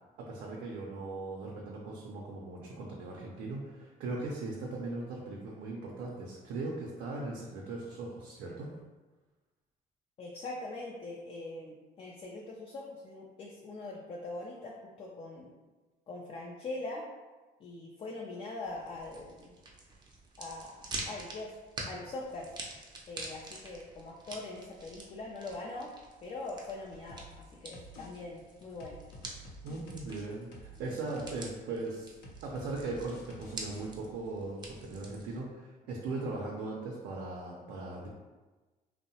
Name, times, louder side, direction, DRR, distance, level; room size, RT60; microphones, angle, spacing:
voice 1, 0.2-8.7 29.6-38.1, right 3 dB, 85° right, -2 dB, 0.5 m, -39 dB
voice 2, 10.2-15.5 16.1-17.0 17.6-19.6 20.4-21.5 21.9-22.5 23.1-25.9 26.2-29.0, left 2 dB, 35° left, -2 dB, 0.3 m, -42 dB
sound 1, 18.7-35.4, right 2 dB, 25° right, 0.5 m, -47 dB
sound 2, 27.1-27.4 27.7-28.1 28.4-30.9 31.2-31.5 31.8-33.9, equal, 75° left, 0.6 m, -49 dB
2.7 x 2.0 x 2.7 m, 1.2 s
cardioid pair, 110°, 17 cm